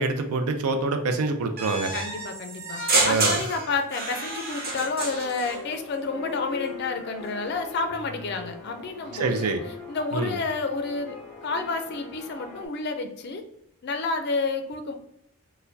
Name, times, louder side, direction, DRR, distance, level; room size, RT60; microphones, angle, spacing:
voice 1, 0.0-1.9 3.0-3.4 9.1-9.6 10.1-10.3, right 3 dB, 80° right, 7 dB, 0.4 m, -26 dB
sound 1, 1.6-5.6, right 2 dB, 40° right, 0.8 m, -28 dB
voice 2, 1.9-9.5 9.9-11.2 11.4-13.4 13.8-14.9, left 3 dB, 45° left, 6 dB, 0.4 m, -30 dB
sound 2, 5.0-12.7, left 4 dB, 5° left, 1.4 m, -40 dB
4.4 x 2.1 x 2.6 m, 0.81 s
head